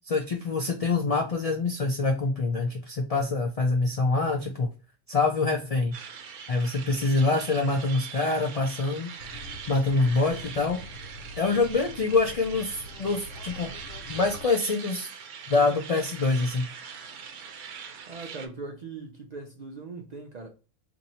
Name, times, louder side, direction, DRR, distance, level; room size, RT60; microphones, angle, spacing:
voice 1, 0.1-4.7 5.1-5.9 6.5-9.1 9.7-10.8 11.4-13.7 14.1-15.1 15.5-16.7, left 3 dB, 65° left, 0.3 m, -25 dB
sound 1, 5.9-18.5, right 7 dB, 75° right, 0.9 m, -42 dB
sound 2, 9.2-14.5, left 1 dB, 85° left, 1.0 m, -44 dB
voice 2, 18.1-20.5, right 3 dB, 60° right, 0.4 m, -40 dB
2.7 x 2.6 x 4.1 m
omnidirectional pair, 1.3 m